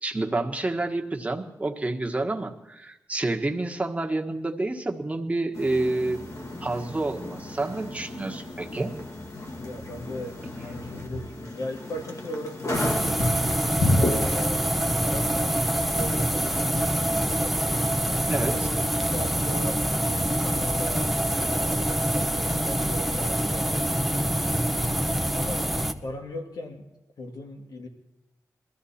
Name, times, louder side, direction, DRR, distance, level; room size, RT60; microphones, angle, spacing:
voice 1, 0.0-6.2 6.6-8.9 18.3-18.5, right 2 dB, 20° right, 3 dB, 1.5 m, -28 dB
sound 1, 5.5-14.5, left 1 dB, 55° left, 2.1 m, -31 dB
voice 2, 9.6-13.1 13.8-15.6 15.9-17.7 18.4-24.8 25.3-26.9 27.2-27.9, left 1 dB, 85° left, 2 dB, 2.2 m, -38 dB
sound 2, 12.7-25.9, right 1 dB, ahead, 1.0 m, -25 dB
22.0 x 14.0 x 4.3 m, 0.93 s
wide cardioid pair, 100°, 6 cm